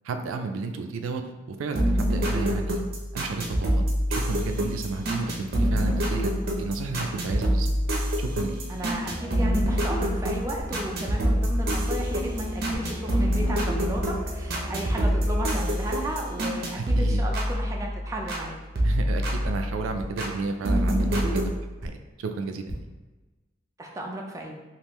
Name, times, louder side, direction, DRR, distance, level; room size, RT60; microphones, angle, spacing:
voice 1, 0.0-2.8 3.1-3.7 4.1-7.7 8.2-8.5 16.8-17.2 18.8-21.5 21.8-21.9 22.2-22.8, right 3 dB, 90° right, 6 dB, 0.3 m, -32 dB
sound 1, 1.8-18.4 18.8-20.3 20.6-21.5, equal, 50° right, 0.6 m, -26 dB
voice 2, 8.7-18.6 23.8-24.5, right 1 dB, 15° right, 0 dB, 0.3 m, -34 dB
Musical instrument, 9.0-16.0, left 1 dB, 15° left, 0.9 m, -38 dB
sound 2, 9.6-10.3 10.5-10.8 11.5-11.7 12.7-13.0 13.4-13.6 13.9-14.3 14.7-14.8 15.2-15.3 16.2-16.4 17.0-17.2 17.5-17.7 18.4-18.6 19.2-20.3 20.7-22.1 22.5-22.7, equal, 60° left, 1.3 m, -41 dB
3.5 x 2.4 x 3.0 m, 1.2 s
head